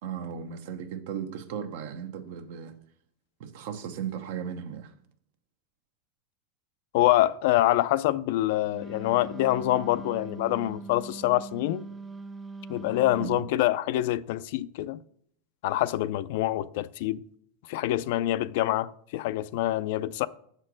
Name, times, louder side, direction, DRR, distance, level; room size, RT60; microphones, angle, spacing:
voice 1, 0.0-2.8 3.4-4.9 13.2-13.4, right 8 dB, 70° right, 0.9 m, -36 dB
voice 2, 6.9-11.9 12.7-15.0 15.6-17.2 17.7-20.3, left 15 dB, 65° left, 0.3 m, -26 dB
Wind instrument woodwind instrument, 8.7-13.4, right 3 dB, 15° right, 0.3 m, -42 dB
6.9 x 4.4 x 6.1 m
supercardioid pair, 120°, 0 cm